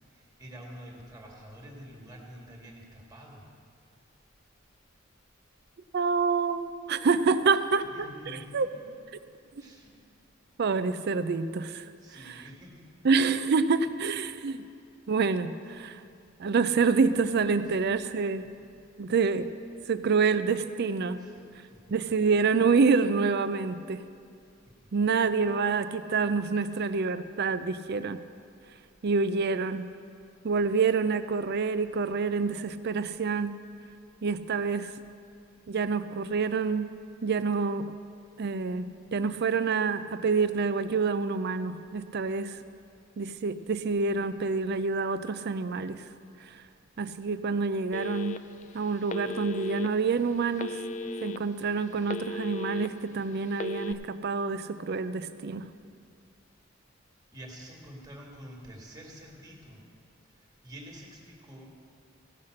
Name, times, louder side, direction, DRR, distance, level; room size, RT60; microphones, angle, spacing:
voice 1, 0.1-3.5 7.8-8.8 9.6-9.9 12.0-13.1 17.6-17.8 18.5-18.6 21.1-21.9 24.6-24.9 26.6-26.7 57.3-59.8 60.3-61.8, equal, 20° right, -1 dB, 1.8 m, -48 dB
voice 2, 5.9-7.9 8.5-8.7 10.6-11.9 13.0-14.7 15.1-16.0 16.4-18.4 19.0-19.5 19.9-21.2 21.9-24.0 24.9-28.2 29.0-29.9 30.4-33.6 34.2-34.9 35.7-37.9 38.4-42.6 43.2-46.0 46.4-46.5 47.0-48.5 48.7-50.8 51.2-55.7, right 4 dB, 55° right, 12 dB, 0.4 m, -27 dB
Telephone, 47.9-48.6 49.1-49.9 50.6-51.4 51.8-52.9 53.5-53.9, left 3 dB, 35° left, 0.4 m, -36 dB
16.0 x 5.7 x 6.4 m, 2.3 s
head